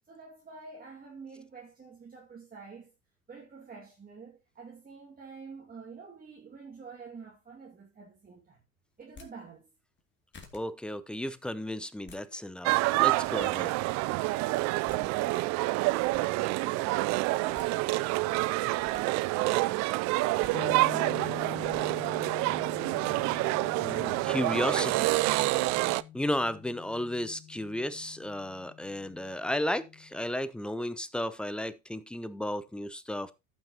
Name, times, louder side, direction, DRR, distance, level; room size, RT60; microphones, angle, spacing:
voice 1, 0.1-2.9 3.3-8.6 9.0-9.7, right 5 dB, 20° right, 2.2 m, -49 dB
sound 1, 9.0-9.3 10.0-10.1 10.3-10.6 11.8-12.2 12.9-13.5 14.6-14.7 14.9-15.0 15.8-16.3 17.3-17.7 18.6-19.0 20.2-20.5 21.4-21.8, left 5 dB, 25° left, 2.5 m, -51 dB
voice 2, 10.5-13.7 23.8-25.2 26.1-33.3, left 1 dB, ahead, 0.6 m, -34 dB
sound 2, 12.6-26.0, right 20 dB, 45° right, 0.4 m, -28 dB
sound 3, 20.5-30.2, left 12 dB, 70° left, 1.7 m, -46 dB
14.5 x 6.0 x 2.9 m
hypercardioid pair, 90°, 42 cm